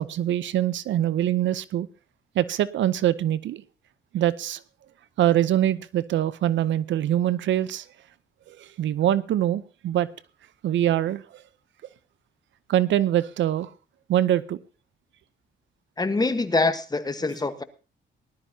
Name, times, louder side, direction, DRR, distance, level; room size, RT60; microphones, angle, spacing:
voice 1, 0.0-1.9 2.4-3.6 4.1-4.6 5.2-7.8 8.5-10.1 10.6-11.4 12.7-13.7 14.1-14.6, right 12 dB, 70° right, 0.7 m, -24 dB
voice 2, 16.0-17.6, left 3 dB, 20° left, 1.3 m, -24 dB
19.0 x 12.0 x 2.8 m
cardioid pair, 90°, 20 cm